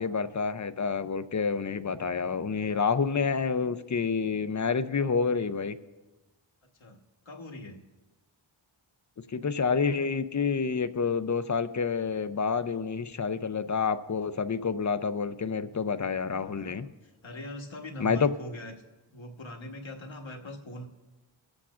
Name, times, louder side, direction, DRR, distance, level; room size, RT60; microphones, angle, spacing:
voice 1, 0.0-5.8 9.3-16.9 18.0-18.3, left 5 dB, 35° left, 12 dB, 0.6 m, -28 dB
voice 2, 7.2-7.8 16.2-18.7 19.1-20.9, left 1 dB, 70° left, 2 dB, 1.4 m, -42 dB
23.0 x 8.4 x 2.5 m, 1.2 s
wide cardioid pair, 60°, 48 cm